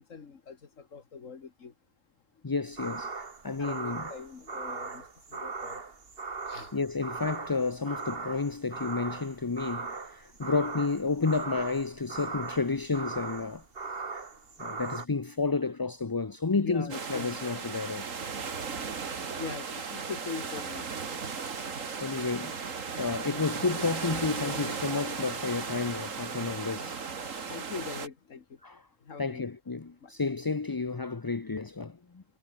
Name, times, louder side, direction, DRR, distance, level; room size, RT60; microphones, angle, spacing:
voice 1, 0.0-1.7 3.6-5.8 6.5-6.7 16.6-17.4 19.3-20.9 22.1-22.2 26.8-26.9 27.5-28.6 29.0-29.5 30.0-30.1, left 5 dB, 75° left, 2.1 m, -42 dB
voice 2, 2.4-4.1 6.7-13.6 13.9-14.0 14.6-18.2 22.0-22.6 23.0-27.0 28.6-28.9 29.2-32.2, left 4 dB, 25° left, 0.5 m, -31 dB
sound 1, 2.8-15.1, right 4 dB, 45° right, 2.0 m, -39 dB
sound 2, 16.9-28.1, right 5 dB, 75° right, 2.3 m, -36 dB
omnidirectional pair, 1.3 m